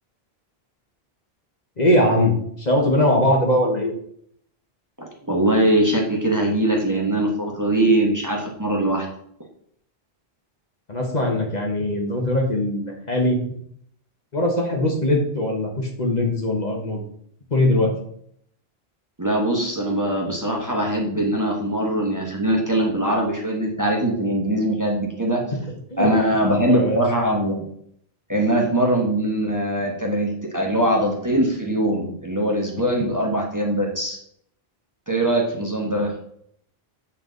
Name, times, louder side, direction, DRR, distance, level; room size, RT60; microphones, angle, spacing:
voice 1, 1.8-3.9 10.9-13.4 14.3-17.0 17.5-17.9 25.5-25.6 25.9-26.1 26.4-27.0, left 1 dB, 45° left, 1 dB, 1.3 m, -21 dB
voice 2, 5.0-9.1 19.2-25.4 26.0-27.6 28.3-34.2 35.1-36.1, right 1 dB, 20° right, -1 dB, 1.1 m, -22 dB
7.7 x 4.5 x 3.9 m, 0.67 s
omnidirectional pair, 1.1 m